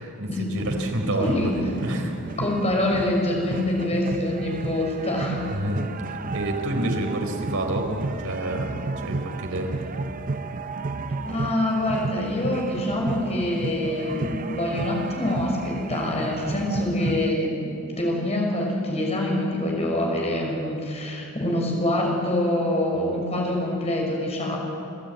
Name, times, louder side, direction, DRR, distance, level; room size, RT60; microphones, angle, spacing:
voice 1, 0.0-2.1 5.5-5.8 6.1-9.8, right 1 dB, 65° right, 3 dB, 4.0 m, -28 dB
sound 1, 0.6-17.3, right 3 dB, 40° right, 0.6 m, -33 dB
voice 2, 1.1-1.7 2.4-5.4 11.2-24.6, left 1 dB, 30° left, -1 dB, 6.1 m, -25 dB
29.5 x 14.0 x 9.2 m, 2.7 s
head